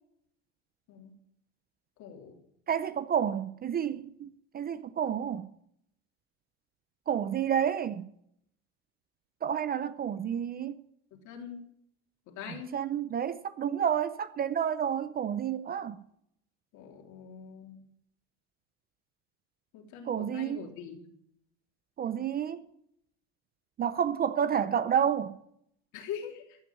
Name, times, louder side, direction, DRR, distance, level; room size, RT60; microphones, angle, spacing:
voice 1, 2.0-2.4 11.3-11.7 12.3-12.8 16.7-17.8 19.7-21.1 25.9-26.6, left 7 dB, 55° left, 3.5 m, -43 dB
voice 2, 2.7-5.5 7.1-8.1 9.4-10.8 12.7-16.0 20.1-20.7 22.0-22.6 23.8-25.3, right 8 dB, 25° right, 0.6 m, -30 dB
15.0 x 6.2 x 10.0 m
supercardioid pair, 115°, 35 cm